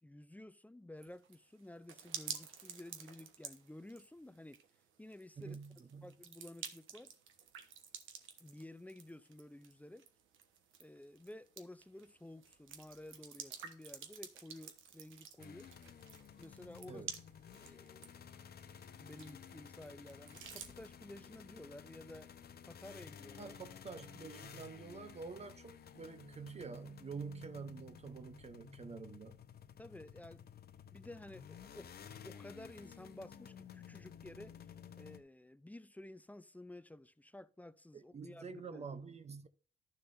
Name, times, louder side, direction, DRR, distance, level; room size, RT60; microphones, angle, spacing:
voice 1, 0.0-4.6 5.0-5.6 6.0-7.1 8.4-10.1 10.8-15.7 16.4-17.0 17.5-18.1 19.0-22.3 22.7-23.6 29.8-30.5 30.9-31.9 32.2-34.5 35.0-38.9, left 1 dB, 10° left, 0.5 m, -53 dB
sound 1, 1.0-20.9, right 7 dB, 80° right, 1.3 m, -51 dB
voice 2, 5.4-6.1 16.9-17.1 23.4-29.4 37.9-39.5, right 5 dB, 35° right, 0.7 m, -47 dB
sound 2, 15.4-35.2, left 8 dB, 50° left, 0.8 m, -54 dB
12.0 x 6.7 x 2.6 m
cardioid pair, 90°, 20 cm